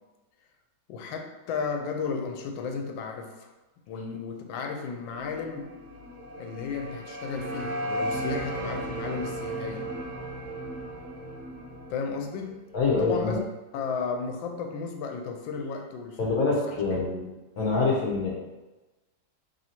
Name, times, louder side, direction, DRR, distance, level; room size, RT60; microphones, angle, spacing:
voice 1, 0.9-3.5 3.9-5.7 6.4-9.9 11.9-13.4 13.7-17.0, left 5 dB, 90° left, 4 dB, 1.3 m, -34 dB
sound 1, 5.1-12.0, left 1 dB, 45° left, 1.1 m, -41 dB
sound 2, 5.9-12.9, right 2 dB, 70° right, 1.0 m, -36 dB
voice 2, 12.7-13.4 16.2-17.3 17.6-18.3, left 3 dB, 65° left, -4 dB, 1.0 m, -25 dB
3.1 x 2.7 x 4.2 m, 1.1 s
omnidirectional pair, 2.0 m